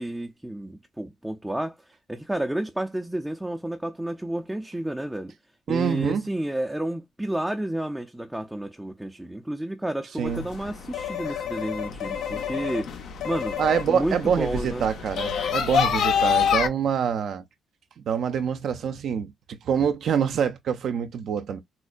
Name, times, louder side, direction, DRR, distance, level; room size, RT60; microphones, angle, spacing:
voice 1, 0.0-1.8 2.1-5.3 5.7-12.9 13.2-14.9, right 1 dB, 5° right, 0.5 m, -31 dB
voice 2, 5.7-6.2 10.2-10.4 13.6-17.4 18.0-21.6, right 7 dB, 65° right, 0.5 m, -26 dB
sound 1, 10.3-16.7, left 7 dB, 70° left, 0.7 m, -27 dB
4.3 x 2.1 x 2.4 m
cardioid pair, 90°, 0 cm